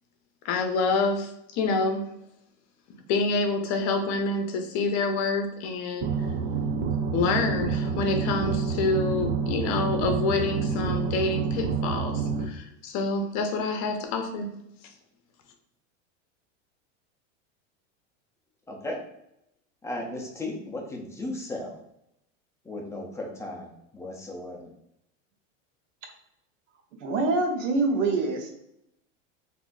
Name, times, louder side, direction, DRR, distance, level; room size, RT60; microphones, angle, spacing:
voice 1, 0.4-2.0 3.1-6.1 7.1-14.5, left 3 dB, 45° left, 5 dB, 0.7 m, -27 dB
sound 1, 6.0-12.4, right 5 dB, 55° right, 0.5 m, -28 dB
voice 2, 18.7-19.0 19.8-21.8 22.6-24.7, left 1 dB, 10° left, -1 dB, 0.4 m, -36 dB
voice 3, 27.0-28.5, right 3 dB, 80° right, 3 dB, 0.9 m, -25 dB
3.6 x 2.6 x 2.5 m, 0.80 s
supercardioid pair, 125°, 38 cm